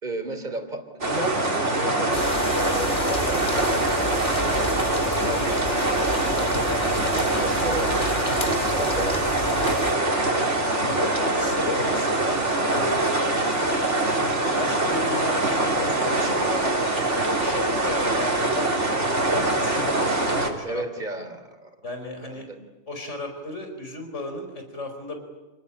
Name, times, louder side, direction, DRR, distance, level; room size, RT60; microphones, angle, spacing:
voice 1, 0.0-2.2 2.6-4.1 5.1-6.0 7.0-7.9 8.3-9.5 16.7-17.1 17.3-18.0 20.6-21.7 22.2-22.6, right 2 dB, 40° right, 7 dB, 3.4 m, -35 dB
sound 1, 1.0-20.5, right 2 dB, 80° right, 3.8 m, -24 dB
sound 2, 2.1-9.9, left 2 dB, 45° left, 2.3 m, -32 dB
voice 2, 5.1-5.6 10.7-13.2 13.4-14.0 14.6-16.8 17.4-20.8 21.8-22.5 22.9-25.2, left 2 dB, 80° left, 5 dB, 5.3 m, -35 dB
27.5 x 20.0 x 9.9 m, 1.1 s
omnidirectional pair, 1.2 m